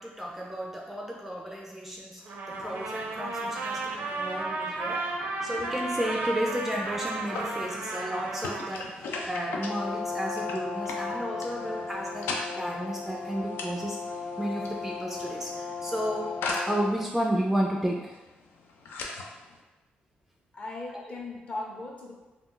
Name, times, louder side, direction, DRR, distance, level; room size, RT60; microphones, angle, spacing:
voice 1, 0.0-5.2 5.4-14.0 14.4-18.2, equal, 5° right, -1 dB, 0.3 m, -32 dB
Trumpet, 2.3-8.8, right 2 dB, 65° right, 0.5 m, -33 dB
sound 1, 2.5-19.6, left 3 dB, 85° left, 0.4 m, -41 dB
Brass instrument, 9.3-17.1, left 4 dB, 70° left, 0.9 m, -36 dB
voice 2, 20.5-22.2, left 2 dB, 40° left, -2 dB, 0.7 m, -38 dB
2.3 x 2.2 x 3.7 m, 1.1 s
cardioid pair, 95°, 3 cm